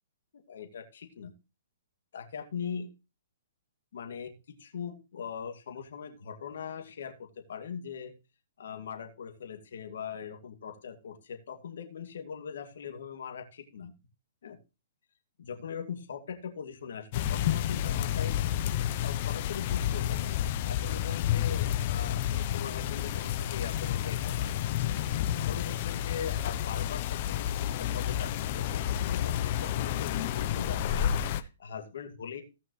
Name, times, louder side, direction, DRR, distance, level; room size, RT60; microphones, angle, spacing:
voice 1, 0.3-1.3 2.1-2.9 3.9-8.1 8.6-13.9 14.4-14.6 15.4-18.4 19.0-20.4 20.7-24.4 25.3-32.4, left 7 dB, 70° left, 5 dB, 2.4 m, -41 dB
sound 1, 17.1-31.4, left 11 dB, 40° left, 0.8 m, -30 dB
17.0 x 6.0 x 3.2 m, 0.29 s
hypercardioid pair, 150°, 0 cm